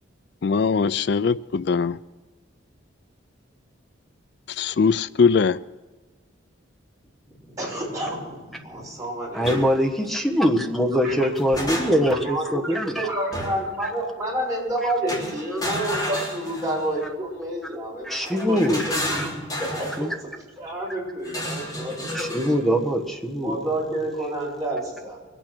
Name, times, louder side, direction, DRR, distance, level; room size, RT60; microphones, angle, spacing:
voice 1, 0.4-2.0 4.6-5.6, left 5 dB, 55° left, 0.4 m, -21 dB
voice 2, 7.3-9.5 10.9-11.1 12.0-19.3 19.5-20.3 20.6-22.1 23.4-25.2, right 1 dB, 15° right, 6.6 m, -29 dB
voice 3, 9.3-13.1 14.8-14.9 18.0-18.9 20.0-20.1 22.1-23.6, equal, ahead, 1.2 m, -23 dB
sound 1, 9.4-9.7 11.1-12.2 13.3-13.7 15.1-16.9 18.2-20.0 21.2-22.6, left 1 dB, 20° left, 3.6 m, -31 dB
23.5 x 9.1 x 6.1 m
head